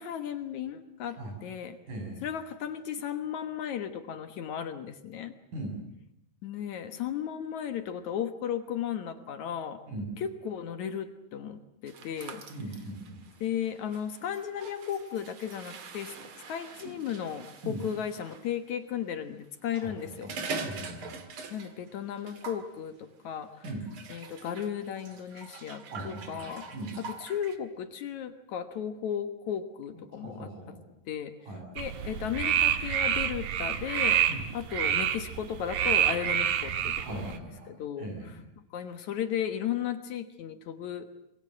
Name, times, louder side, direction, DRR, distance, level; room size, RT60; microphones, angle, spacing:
voice 1, 0.0-1.8 2.2-5.3 6.4-9.8 10.2-12.4 13.4-16.1 16.5-20.3 21.5-23.5 24.1-26.7 27.0-30.8 31.1-31.3 31.8-34.2 34.5-38.1 38.7-41.1, left 9 dB, 65° left, 10 dB, 2.5 m, -35 dB
voice 2, 1.9-2.2 5.5-5.8 9.9-10.1 12.5-13.2 17.6-17.8 19.7-21.2 23.6-23.9 25.9-27.0 30.1-30.8 31.5-31.6 34.3-34.5 37.0-38.4, right 1 dB, 70° right, 2 dB, 8.6 m, -40 dB
sound 1, 11.9-18.5 19.5-21.9 22.2-22.7 23.6-27.6, right 4 dB, 45° right, 2.4 m, -43 dB
sound 2, 31.8-37.4, right 9 dB, 90° right, 3.2 m, -28 dB
26.5 x 22.0 x 7.8 m, 0.77 s
omnidirectional pair, 3.9 m